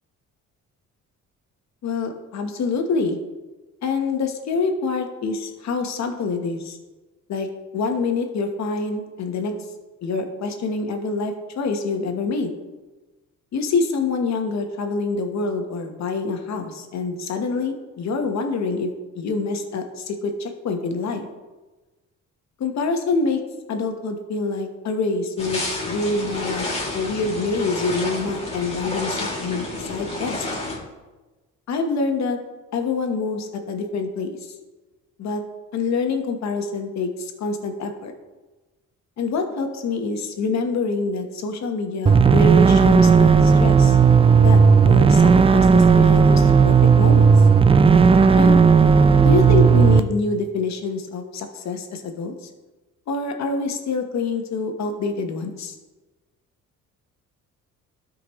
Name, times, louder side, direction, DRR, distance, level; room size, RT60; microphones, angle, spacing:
voice 1, 1.8-3.2 3.8-6.8 7.3-7.5 7.7-9.5 10.0-12.6 13.5-18.9 19.1-21.3 22.6-23.4 23.7-26.7 26.9-30.4 31.7-32.4 32.7-34.5 35.2-35.4 35.7-38.1 39.2-44.0 44.4-47.3 48.3-48.6 49.2-52.5 53.1-55.8, left 4 dB, 65° left, 5 dB, 1.2 m, -26 dB
sound 1, 25.4-30.8, left 2 dB, 20° left, 2.2 m, -30 dB
sound 2, 42.1-50.0, right 5 dB, 20° right, 0.3 m, -13 dB
12.5 x 5.2 x 3.1 m, 1.2 s
cardioid pair, 90°, 30 cm